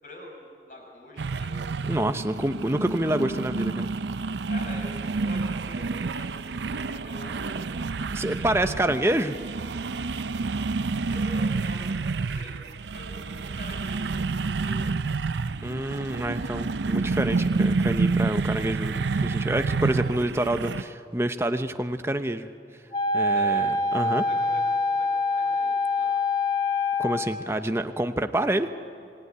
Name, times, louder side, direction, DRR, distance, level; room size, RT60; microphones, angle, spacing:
voice 1, 0.0-1.6 4.5-7.6 8.1-8.9 11.1-12.6 12.9-14.9 23.3-23.7 24.0-26.1, left 1 dB, 50° left, 0 dB, 6.8 m, -45 dB
sound 1, 1.2-20.8, right 4 dB, 80° right, 0.6 m, -29 dB
voice 2, 1.8-3.9 8.1-9.4 15.6-22.5 23.1-24.2 27.0-28.7, right 1 dB, 15° right, 8 dB, 0.8 m, -27 dB
Wind instrument woodwind instrument, 22.9-27.3, left 2 dB, 25° left, 1.8 m, -25 dB
26.0 x 19.0 x 9.7 m, 2.4 s
head